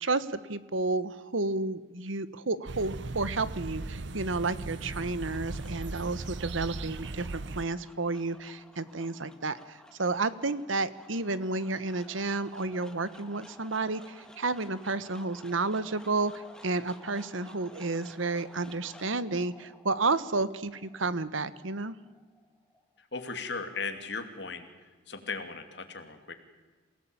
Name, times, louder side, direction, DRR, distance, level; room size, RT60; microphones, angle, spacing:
voice 1, 0.0-16.3 16.6-22.0, right 3 dB, 85° right, 15 dB, 1.3 m, -31 dB
sound 1, 2.7-7.6, right 3 dB, 65° right, 0.8 m, -38 dB
sound 2, 5.0-23.0, left 1 dB, 5° left, 1.9 m, -54 dB
voice 2, 23.1-24.7 25.1-26.3, left 4 dB, 60° left, 7 dB, 2.8 m, -37 dB
28.0 x 17.5 x 8.9 m, 1.3 s
head